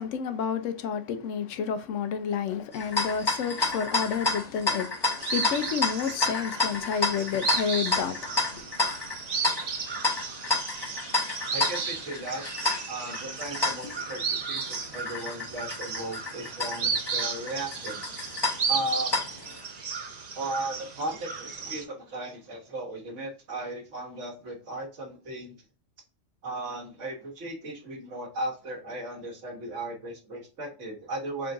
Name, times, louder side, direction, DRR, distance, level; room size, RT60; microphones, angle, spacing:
voice 1, 0.0-8.7, left 7 dB, 85° left, 0.9 m, -30 dB
sound 1, 2.7-19.6, left 3 dB, 20° left, 0.8 m, -31 dB
sound 2, 5.2-21.8, right 5 dB, 45° right, 0.6 m, -34 dB
voice 2, 11.5-18.3 18.7-19.1 20.4-25.5 26.4-31.5, right 1 dB, 75° right, 1.6 m, -36 dB
3.8 x 3.7 x 2.3 m
omnidirectional pair, 1.3 m